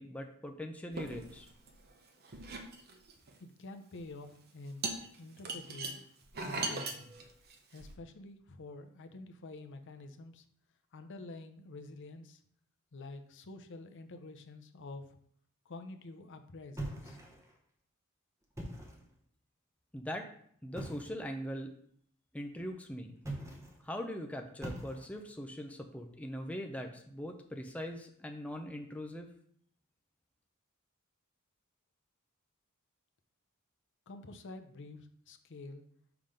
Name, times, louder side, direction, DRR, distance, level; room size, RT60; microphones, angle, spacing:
voice 1, 0.0-1.5 19.9-20.3 20.6-21.7 22.3-23.2 23.8-29.3, equal, 5° left, 4 dB, 0.5 m, -41 dB
sound 1, 0.9-1.9 2.2-3.3 4.1-4.3 4.8-7.9, right 3 dB, 45° right, 0.8 m, -39 dB
voice 2, 3.4-4.9 5.2-6.0 6.4-7.2 7.7-10.4 10.9-12.4 12.9-15.2 15.7-17.2 34.1-35.8, left 2 dB, 60° left, 8 dB, 0.6 m, -48 dB
sound 2, 16.8-17.6 18.4-19.1 20.7-21.2 23.2-23.8 24.6-25.3, right 1 dB, 15° right, 1.0 m, -43 dB
5.8 x 3.7 x 5.0 m, 0.64 s
head